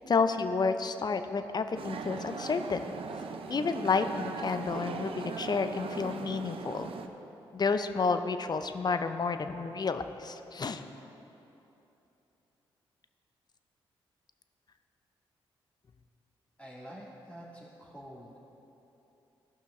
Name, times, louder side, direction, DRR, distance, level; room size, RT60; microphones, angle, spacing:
voice 1, 0.1-2.8 3.5-6.9 7.5-10.9, left 4 dB, 40° left, 9 dB, 0.6 m, -30 dB
sound 1, 1.8-7.1, right 5 dB, 60° right, 0.6 m, -39 dB
voice 2, 16.6-18.4, equal, 15° left, -8 dB, 1.9 m, -47 dB
15.5 x 5.7 x 3.6 m, 3.0 s
supercardioid pair, 50°, 11 cm